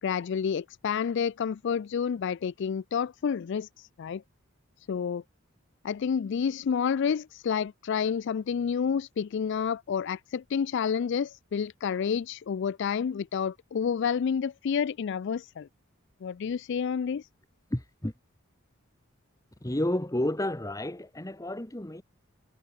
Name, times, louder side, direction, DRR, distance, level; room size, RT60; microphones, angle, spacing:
voice 1, 0.0-4.2 4.9-5.2 5.8-15.7 16.2-17.3, left 7 dB, 55° left, 0.3 m, -29 dB
voice 2, 17.7-18.1 19.6-22.0, left 1 dB, 15° left, 1.3 m, -31 dB
head